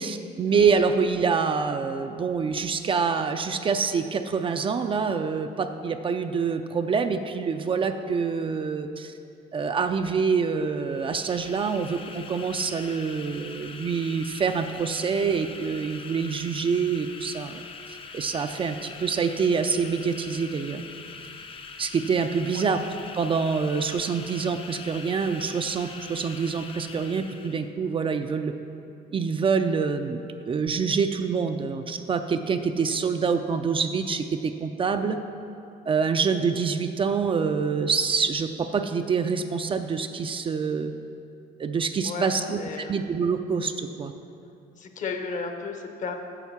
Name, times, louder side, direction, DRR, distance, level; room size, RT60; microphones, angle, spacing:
voice 1, 0.0-9.1 9.5-17.6 18.1-20.8 21.8-22.8 23.1-28.5 29.1-30.2 30.5-35.2 35.9-40.9 41.6-44.1, right 5 dB, 30° right, 7 dB, 0.4 m, -26 dB
sound 1, 10.8-27.7, left 5 dB, 30° left, 0.5 m, -43 dB
voice 2, 42.0-43.0 44.8-46.1, left 4 dB, 50° left, 5 dB, 0.9 m, -34 dB
8.2 x 5.4 x 7.1 m, 2.6 s
cardioid pair, 110°, 17 cm